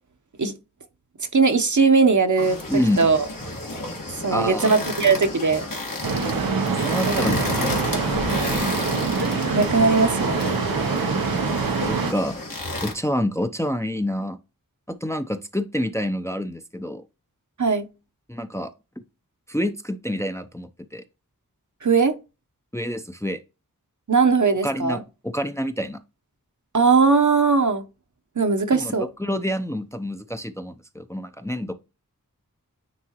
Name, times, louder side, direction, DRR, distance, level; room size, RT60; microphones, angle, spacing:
voice 1, 1.3-3.2 4.2-5.7 7.1-7.2 9.5-10.4 17.6-17.9 21.8-22.1 24.1-25.0 26.7-27.8 28.4-29.1, right 4 dB, 60° right, 0.9 m, -19 dB
sound 1, 2.4-12.9, left 2 dB, 75° left, 1.8 m, -31 dB
voice 2, 2.7-3.0 4.3-4.7 6.7-7.7 8.0-9.0 11.9-12.4 12.8-14.4 14.9-17.0 18.3-18.7 19.5-21.0 22.7-23.4 24.6-26.0 28.7-31.7, equal, 10° left, 0.5 m, -28 dB
sound 2, 6.0-12.1, right 4 dB, 85° right, 0.8 m, -25 dB
9.4 x 3.7 x 2.9 m
wide cardioid pair, 50°, 34 cm